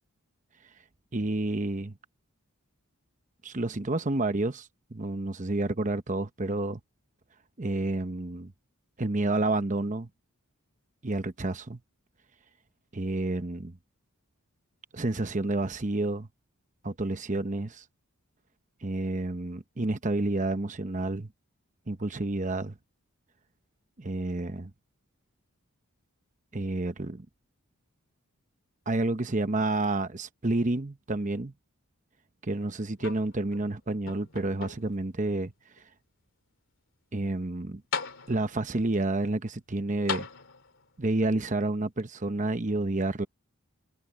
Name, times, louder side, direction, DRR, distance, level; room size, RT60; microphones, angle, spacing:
voice 1, 1.1-1.9 3.4-6.8 7.6-8.5 9.0-10.1 11.0-11.8 12.9-13.8 14.9-16.3 16.8-17.8 18.8-21.3 21.9-22.7 24.0-24.7 26.5-27.3 28.9-31.5 32.4-35.5 37.1-37.8 38.3-40.3 41.0-43.3, right 2 dB, 35° right, 0.9 m, -29 dB
sound 1, 33.0-33.7 34.1-35.1 35.8-35.9 37.4-37.5 37.9-38.7 40.1-40.9 42.0-42.1, left 6 dB, 60° left, 3.1 m, -37 dB
head